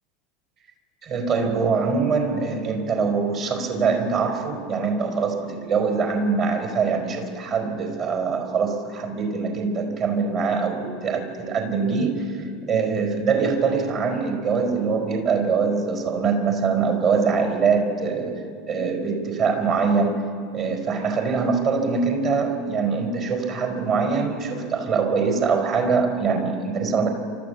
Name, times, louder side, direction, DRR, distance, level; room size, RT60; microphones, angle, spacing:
voice 1, 1.0-18.4 18.7-20.2 20.5-27.1, right 5 dB, 40° right, 3 dB, 4.5 m, -23 dB
28.0 x 13.5 x 7.2 m, 2.2 s
figure-of-eight pair, 80°, 0 cm